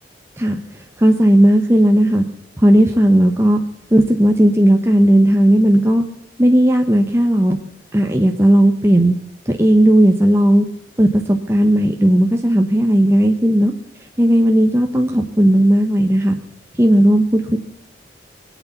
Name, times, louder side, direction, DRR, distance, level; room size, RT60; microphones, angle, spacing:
voice 1, 0.4-2.2 2.6-3.6 3.9-6.0 6.4-7.6 7.9-9.1 9.5-10.7 11.0-13.7 14.2-16.4 16.8-17.6, right 1 dB, 15° right, 3 dB, 1.0 m, -14 dB
23.5 x 8.3 x 7.1 m, 0.84 s
head